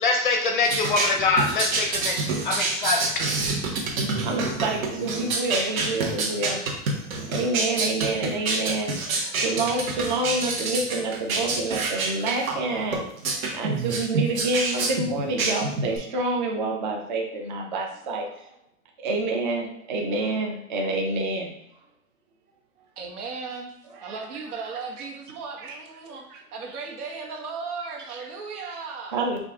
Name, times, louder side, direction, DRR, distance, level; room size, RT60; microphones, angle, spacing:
voice 1, 0.0-3.1, left 3 dB, 35° left, 2 dB, 0.5 m, -24 dB
sound 1, 0.6-16.0, right 3 dB, 65° right, 1.3 m, -27 dB
voice 2, 4.2-6.6 7.3-13.1 13.5-18.5 19.0-21.5 23.9-24.2 25.6-25.8 26.3-26.4 28.1-28.2 29.1-29.4, right 2 dB, 35° right, 1 dB, 0.5 m, -28 dB
voice 3, 23.0-23.7 24.0-29.1, right 4 dB, 85° right, 1 dB, 1.3 m, -36 dB
5.2 x 2.5 x 3.6 m, 0.77 s
supercardioid pair, 175°, 44 cm